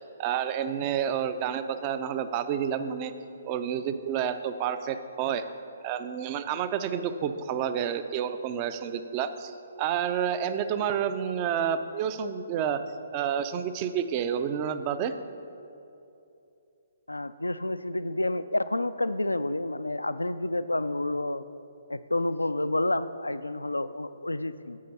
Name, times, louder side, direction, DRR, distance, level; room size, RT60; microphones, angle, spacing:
voice 1, 0.2-3.1 3.5-5.5 5.8-9.5 9.8-12.8 13.1-15.1, right 8 dB, 30° right, 10 dB, 0.4 m, -29 dB
voice 2, 17.1-21.5 21.9-24.8, left 2 dB, 85° left, 14 dB, 0.3 m, -29 dB
8.4 x 5.2 x 5.9 m, 2.7 s
figure-of-eight pair, 130°, 0 cm